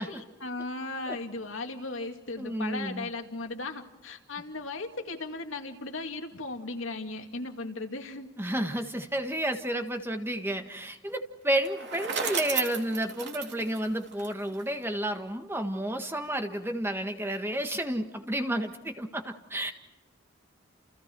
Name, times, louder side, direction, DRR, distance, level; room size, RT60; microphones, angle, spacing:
voice 1, 0.0-8.3, left 3 dB, 75° left, 4 dB, 2.5 m, -37 dB
voice 2, 2.4-3.1 8.4-19.7, right 1 dB, 10° right, 5 dB, 1.6 m, -31 dB
Bicycle, 11.5-14.7, right 6 dB, 60° right, 3.2 m, -34 dB
30.0 x 29.5 x 4.7 m, 1.1 s
head